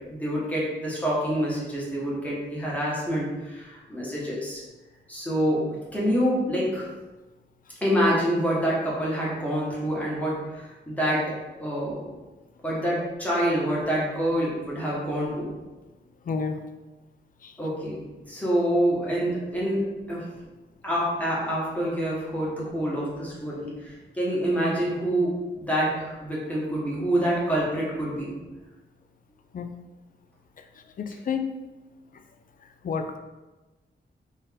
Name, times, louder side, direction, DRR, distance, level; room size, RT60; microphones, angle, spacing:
voice 1, 0.1-4.6 5.1-5.6 5.9-6.8 7.8-11.2 11.6-12.1 12.6-15.6 17.6-18.0 18.3-19.8 20.1-20.2 20.8-28.4, equal, 10° left, -7 dB, 1.2 m, -26 dB
voice 2, 16.3-16.6 17.4-17.5 20.1-20.3 29.5-29.7 31.0-31.5 32.8-33.2, left 5 dB, 45° left, 6 dB, 0.4 m, -30 dB
3.9 x 2.6 x 3.6 m, 1.2 s
wide cardioid pair, 130°, 19 cm